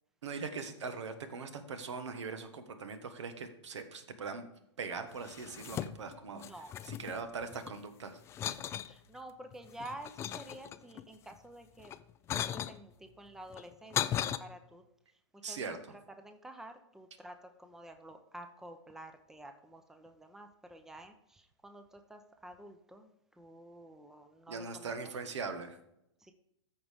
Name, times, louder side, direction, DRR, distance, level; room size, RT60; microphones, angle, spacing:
voice 1, 0.2-4.4 4.8-6.4 6.9-8.2 15.4-15.8 24.5-25.8, right 4 dB, 75° right, 9 dB, 1.4 m, -41 dB
sound 1, 5.2-6.2 6.4-7.8 8.3-8.9 9.5-11.0 11.8-12.8 13.5-14.4, left 11 dB, 20° left, 0.3 m, -37 dB
voice 2, 6.3-6.7 8.8-11.9 12.3-14.8 15.1-15.8 16.2-24.9 26.2-26.3, right 1 dB, 5° right, 7 dB, 0.7 m, -50 dB
14.0 x 4.8 x 3.6 m, 0.82 s
hypercardioid pair, 120°, 15 cm